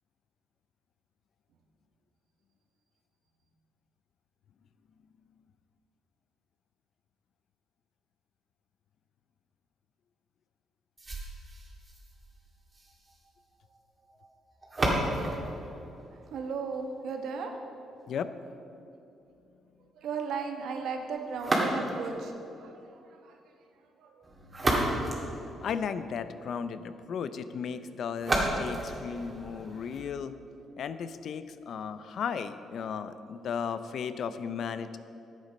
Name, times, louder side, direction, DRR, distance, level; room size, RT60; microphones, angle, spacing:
sound 1, 11.0-17.0 21.3-22.2 24.2-26.2 28.2-30.2, right 1 dB, 25° right, 2.2 m, -33 dB
voice 1, 16.3-17.5 19.9-23.4 24.0-24.2, right 5 dB, 75° right, 4 dB, 1.1 m, -36 dB
voice 2, 25.4-30.3 30.8-35.0, left 6 dB, 65° left, 12 dB, 0.5 m, -35 dB
11.0 x 8.2 x 5.3 m, 2.7 s
cardioid pair, 90°, 0 cm